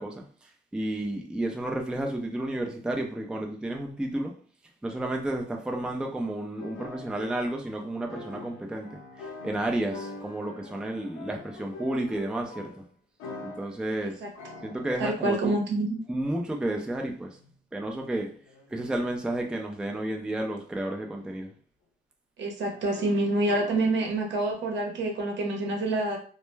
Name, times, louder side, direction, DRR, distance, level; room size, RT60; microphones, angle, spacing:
voice 1, 0.0-4.3 4.8-12.8 13.4-14.2 14.6-15.6 16.1-17.4 17.7-18.3 18.7-21.5, right 1 dB, 5° right, 2 dB, 0.4 m, -32 dB
sound 1, 6.5-12.9 13.2-13.8 14.3-15.4 16.0-16.5 17.3-17.6 18.2-19.3 20.1-20.6 20.9-21.1 21.4-21.5 22.6-24.2, left 3 dB, 90° left, 0.6 m, -45 dB
voice 2, 15.0-15.9 22.4-26.2, right 2 dB, 65° right, 1 dB, 0.8 m, -27 dB
2.1 x 2.1 x 3.2 m, 0.43 s
cardioid pair, 90°, 20 cm